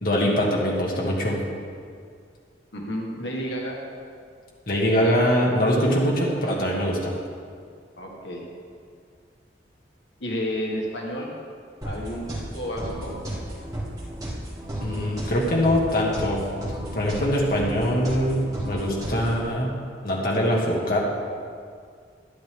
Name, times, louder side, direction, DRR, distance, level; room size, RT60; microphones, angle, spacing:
voice 1, 0.0-1.4 4.7-7.1 14.8-16.4 16.9-19.7 20.0-21.0, equal, 55° left, -3 dB, 1.6 m, -23 dB
voice 2, 2.7-3.8 8.0-8.4 10.2-11.3 11.8-13.1, equal, 90° left, -1 dB, 1.6 m, -31 dB
sound 1, 11.8-19.5, right 1 dB, 20° right, 2.4 m, -34 dB
12.0 x 11.0 x 3.4 m, 2.2 s
head